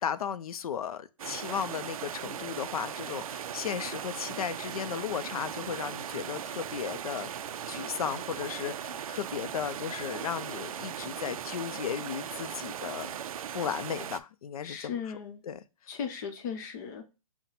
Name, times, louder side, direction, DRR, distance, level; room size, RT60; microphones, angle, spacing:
voice 1, 0.0-13.1 13.5-15.2 15.4-15.6, left 8 dB, 80° left, 0.5 m, -35 dB
sound 1, 1.2-14.2, right 9 dB, 70° right, 0.4 m, -38 dB
voice 2, 14.6-15.4 15.9-17.1, left 7 dB, 30° left, 0.8 m, -37 dB
5.9 x 2.2 x 4.0 m
hypercardioid pair, 165°, 19 cm